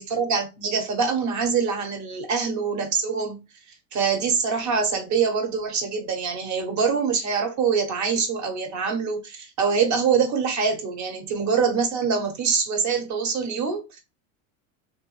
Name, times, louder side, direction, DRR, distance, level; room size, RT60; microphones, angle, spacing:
voice 1, 0.0-3.4 3.9-14.0, right 5 dB, 45° right, 1.1 m, -24 dB
3.1 x 2.2 x 3.0 m
hypercardioid pair, 95°, 41 cm